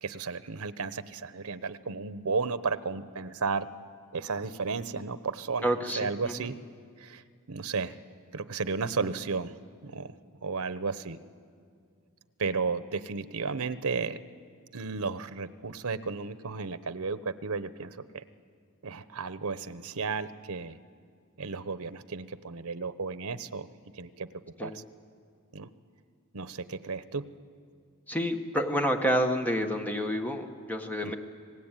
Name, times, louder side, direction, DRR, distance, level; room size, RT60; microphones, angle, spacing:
voice 1, 0.0-3.7 4.1-5.7 6.0-6.5 7.0-7.2 7.5-8.0 8.3-9.5 9.8-10.1 10.4-11.2 12.4-14.2 14.7-18.2 18.8-20.8 21.4-23.7 23.9-24.3 24.6-24.7 25.5-25.7 26.3-27.2 31.0-31.1, right 4 dB, 80° right, 13 dB, 0.9 m, -33 dB
voice 2, 5.6-6.5 24.6-24.8 28.1-31.1, equal, 10° left, 4 dB, 1.5 m, -29 dB
26.5 x 19.0 x 9.1 m, 2.2 s
head